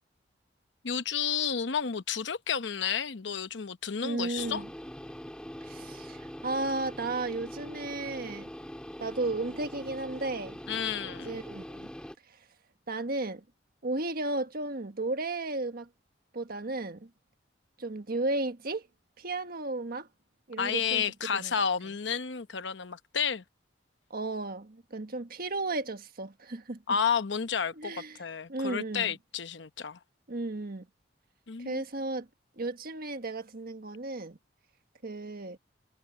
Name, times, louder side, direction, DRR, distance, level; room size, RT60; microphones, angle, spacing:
voice 1, 0.8-4.6 10.7-11.3 20.6-23.4 26.9-27.9 28.2-30.0 31.5-31.8, left 7 dB, 70° left, 0.9 m, -31 dB
voice 2, 4.0-4.7 5.6-8.5 9.0-10.6 11.0-11.9 12.3-12.4 12.9-13.4 13.8-15.9 16.3-17.1 17.8-18.9 19.2-20.1 20.5-21.1 21.3-21.5 24.1-27.0 27.8-28.2 28.5-29.1 30.3-30.9 31.6-32.3 32.6-34.4 35.0-35.6, right 2 dB, 55° right, 1.5 m, -34 dB
sound 1, 4.4-12.1, equal, 5° left, 2.1 m, -43 dB
head